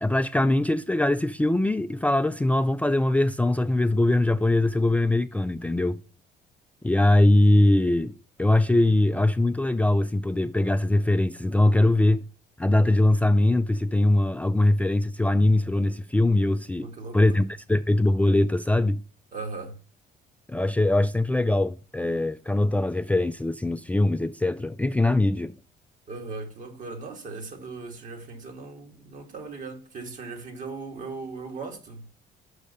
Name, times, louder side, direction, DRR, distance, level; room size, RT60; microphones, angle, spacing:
voice 1, 0.0-6.0 6.8-8.1 8.4-12.2 12.6-16.9 17.1-19.0 20.5-25.5, left 1 dB, 10° left, 0.3 m, -22 dB
voice 2, 16.8-17.4 19.3-19.8 26.1-32.1, right 3 dB, 50° right, 2.1 m, -38 dB
6.4 x 5.1 x 6.6 m
cardioid pair, 110°, 17 cm